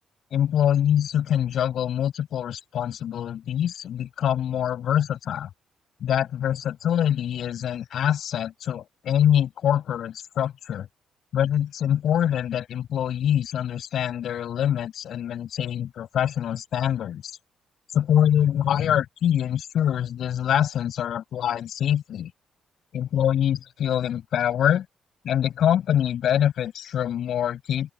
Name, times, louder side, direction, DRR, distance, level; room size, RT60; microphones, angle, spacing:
voice 1, 0.3-5.5 6.0-10.9 11.3-17.3 17.9-22.3 22.9-24.9 25.2-27.9, left 10 dB, 70° left, 7.3 m, -24 dB
open air
cardioid pair, 90°, 0 cm